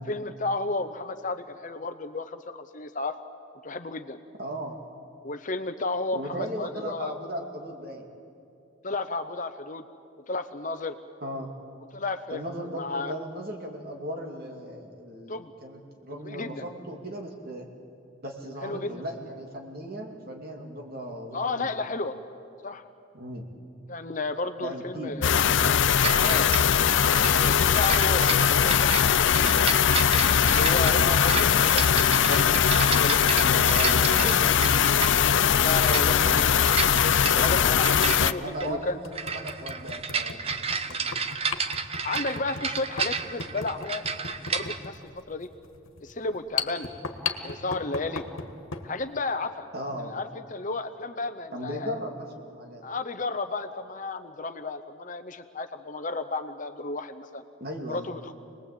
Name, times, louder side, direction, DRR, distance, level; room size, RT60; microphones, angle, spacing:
voice 1, 0.1-3.2 3.6-4.2 5.2-7.1 8.8-9.8 10.3-11.0 11.9-12.4 12.7-13.2 15.3-15.5 16.1-16.7 18.6-18.9 21.3-22.1 22.6-22.8 23.9-25.4 26.2-26.5 27.3-29.7 30.4-33.4 35.6-36.5 37.3-38.0 38.3-39.0 42.0-44.1 44.5-45.0 45.3-45.5 46.0-46.9 47.4-48.2 48.8-49.7 50.0-52.0 52.8-57.4 57.9-58.3, left 3 dB, 40° left, 9 dB, 0.8 m, -33 dB
voice 2, 4.4-4.8 6.1-8.1 11.2-11.5 12.3-17.7 18.2-21.7 23.1-23.5 24.6-25.6 30.9-31.2 33.4-35.1 35.9-36.6 38.0-41.2 49.7-50.2 51.5-52.8 57.6-58.1, equal, 45° right, 2 dB, 2.6 m, -37 dB
sound 1, 25.2-38.3, left 8 dB, 60° left, 0.5 m, -21 dB
sound 2, 26.0-44.8, right 5 dB, 30° right, 0.8 m, -32 dB
sound 3, 39.0-48.9, left 5 dB, 80° left, 1.6 m, -37 dB
26.5 x 20.0 x 8.5 m, 2.5 s
head